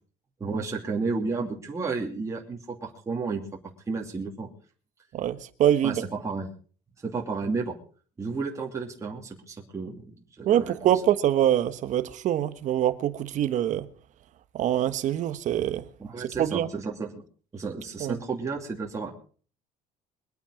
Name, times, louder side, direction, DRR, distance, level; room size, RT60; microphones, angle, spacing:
voice 1, 0.4-3.4 3.9-4.5 5.8-6.5 7.0-7.8 8.2-10.9 16.0-17.2 17.5-19.1, right 4 dB, 20° right, 2.7 m, -32 dB
voice 2, 5.1-6.0 10.4-13.9 14.5-15.8 16.4-16.7 18.0-18.2, right 11 dB, 50° right, 1.3 m, -24 dB
23.0 x 9.0 x 4.9 m
cardioid pair, 135°, 16 cm